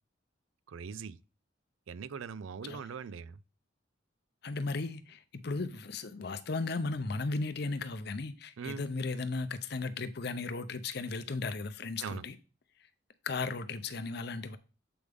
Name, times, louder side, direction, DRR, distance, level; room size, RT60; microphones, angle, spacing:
voice 1, 0.7-1.2 1.9-3.4 8.6-8.8 12.0-12.2, right 6 dB, 85° right, 0.4 m, -41 dB
voice 2, 4.4-12.4 13.2-14.6, left 3 dB, 55° left, 0.6 m, -36 dB
7.9 x 4.8 x 3.5 m
head